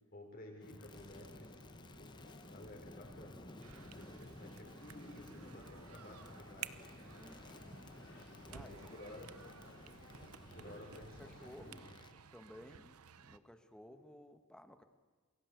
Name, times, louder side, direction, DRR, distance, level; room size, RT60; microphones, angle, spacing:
voice 1, 0.1-2.1 2.5-3.4 3.7-6.7 8.5-9.3 10.5-11.9, left 1 dB, 40° left, 0 dB, 5.3 m, -54 dB
sound 1, 0.6-11.9, left 2 dB, 70° left, 3.6 m, -61 dB
Crackle, 0.6-12.2, left 1 dB, 20° left, 0.9 m, -55 dB
sound 2, 3.6-13.4, right 8 dB, 90° right, 0.9 m, -55 dB
voice 2, 8.5-8.9 10.6-10.7 11.2-11.9 12.3-14.8, equal, 5° left, 7 dB, 1.5 m, -56 dB
28.0 x 22.0 x 8.2 m, 1.4 s
head